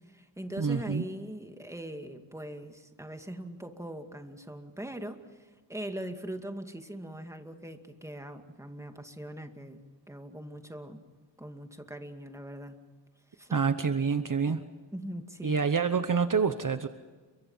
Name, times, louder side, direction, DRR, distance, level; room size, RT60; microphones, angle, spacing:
voice 1, 0.1-11.0 11.4-12.8 13.3-13.6 14.4-14.6 14.9-15.6, right 1 dB, 5° right, 5 dB, 2.3 m, -41 dB
voice 2, 0.6-1.0 13.5-14.6 15.4-16.9, right 5 dB, 45° right, 9 dB, 1.1 m, -27 dB
30.0 x 24.0 x 5.7 m, 1.4 s
wide cardioid pair, 85°, 44 cm